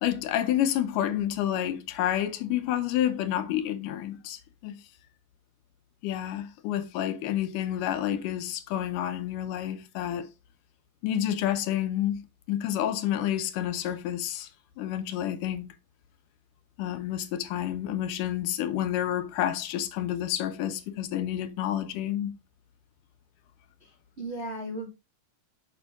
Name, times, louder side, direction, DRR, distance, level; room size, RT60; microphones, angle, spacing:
voice 1, 0.0-4.8 6.0-10.3 11.0-12.2 12.5-14.5 14.8-15.7 16.8-22.3, left 11 dB, 80° left, 2.2 m, -29 dB
voice 2, 23.8-24.9, right 1 dB, 40° right, 0.9 m, -36 dB
7.0 x 5.5 x 3.5 m
omnidirectional pair, 3.8 m